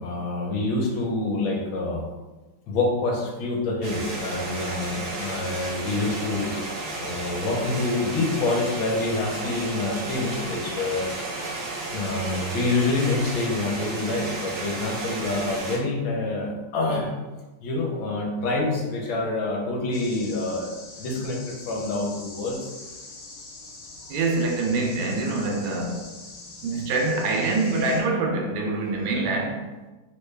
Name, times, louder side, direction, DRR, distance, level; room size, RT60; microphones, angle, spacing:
voice 1, 0.0-2.0 2.7-6.5 7.0-11.1 11.9-17.1 17.6-20.7 21.0-22.7, left 2 dB, 80° left, 1.5 m, -27 dB
sound 1, 3.8-15.8, right 2 dB, 65° right, 1.0 m, -33 dB
sound 2, 19.9-28.0, left 2 dB, 60° left, 1.0 m, -43 dB
voice 2, 24.1-26.1 26.6-29.7, right 3 dB, 90° right, 1.5 m, -25 dB
3.8 x 2.2 x 3.2 m
omnidirectional pair, 2.3 m